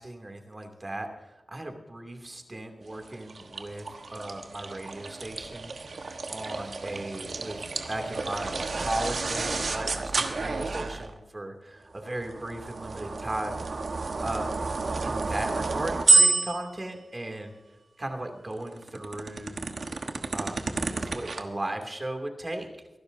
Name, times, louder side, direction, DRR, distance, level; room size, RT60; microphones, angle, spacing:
voice 1, 0.0-7.6 7.9-13.7 14.2-14.5 15.0-17.6 18.0-19.7 20.3-20.6 20.9-22.7, right 1 dB, 30° right, 4 dB, 2.7 m, -36 dB
sound 1, 2.9-11.2 12.1-16.9 18.5-21.4, right 3 dB, 75° right, 1.3 m, -29 dB
24.5 x 12.0 x 2.7 m, 1.1 s
wide cardioid pair, 75°, 0 cm